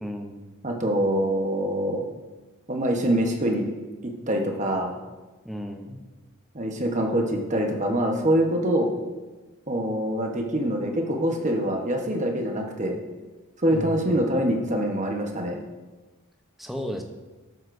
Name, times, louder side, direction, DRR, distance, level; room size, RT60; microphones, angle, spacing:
voice 1, 0.0-0.5 5.4-6.0 13.7-14.3 16.6-17.0, equal, ahead, 2 dB, 0.7 m, -34 dB
voice 2, 0.6-2.0 2.7-3.6 4.0-5.0 6.5-8.9 9.7-13.0 13.6-15.6, right 1 dB, 35° right, 2 dB, 1.0 m, -25 dB
11.5 x 7.8 x 2.6 m, 1.2 s
head